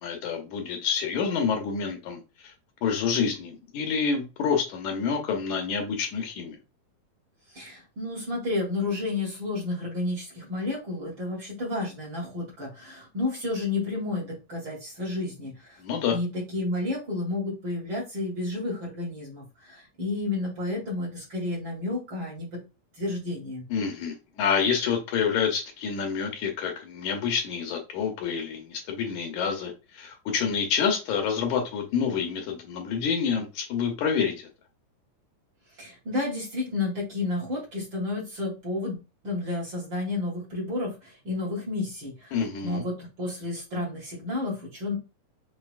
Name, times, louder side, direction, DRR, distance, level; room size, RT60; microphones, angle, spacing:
voice 1, 0.0-2.5 2.8-6.6 15.8-16.2 23.7-34.5 42.3-42.8, left 6 dB, 75° left, 2.1 m, -28 dB
voice 2, 7.5-15.8 16.1-22.6 23.0-23.6 35.8-42.4 42.6-45.0, left 2 dB, 45° right, 1.9 m, -31 dB
6.2 x 2.7 x 2.4 m
omnidirectional pair, 3.6 m